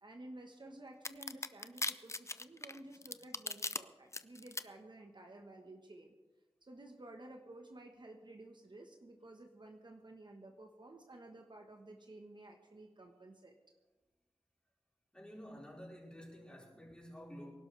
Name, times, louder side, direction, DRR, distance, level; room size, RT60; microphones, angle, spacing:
voice 1, 0.0-6.1 6.6-13.5, right 2 dB, 45° right, 3 dB, 1.3 m, -53 dB
sound 1, 1.0-3.8 4.1-4.6, left 2 dB, 25° left, 0.5 m, -38 dB
voice 2, 15.1-17.5, equal, 10° left, -4 dB, 4.8 m, -51 dB
24.5 x 12.0 x 3.3 m, 1.2 s
wide cardioid pair, 90°, 10 cm